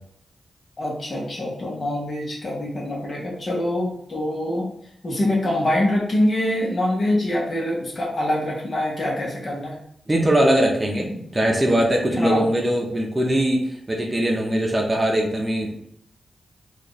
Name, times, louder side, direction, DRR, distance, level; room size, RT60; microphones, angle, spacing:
voice 1, 0.8-4.7 5.0-9.8 12.2-12.4, left 1 dB, 45° left, -2 dB, 1.3 m, -24 dB
voice 2, 10.1-15.9, right 1 dB, 20° right, 0 dB, 0.8 m, -21 dB
4.5 x 2.5 x 3.2 m, 0.70 s
cardioid pair, 80°, 0 cm